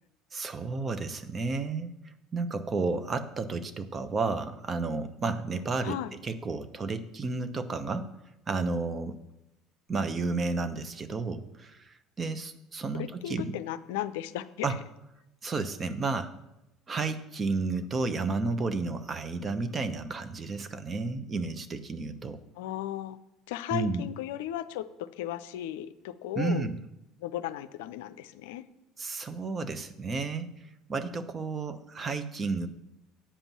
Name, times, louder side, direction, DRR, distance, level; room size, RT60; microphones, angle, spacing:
voice 1, 0.3-1.9 2.3-6.0 6.2-8.1 8.5-9.2 9.9-13.5 14.6-14.8 15.4-16.3 16.9-22.4 23.7-24.0 26.3-26.7 29.0-30.5 30.9-32.7, right 3 dB, 35° right, 10 dB, 0.9 m, -32 dB
voice 2, 5.8-6.1 12.9-14.7 22.6-23.2 23.5-26.7 27.2-28.6, left 12 dB, 80° left, 12 dB, 0.4 m, -35 dB
8.7 x 5.3 x 7.3 m, 0.90 s
hypercardioid pair, 70°, 0 cm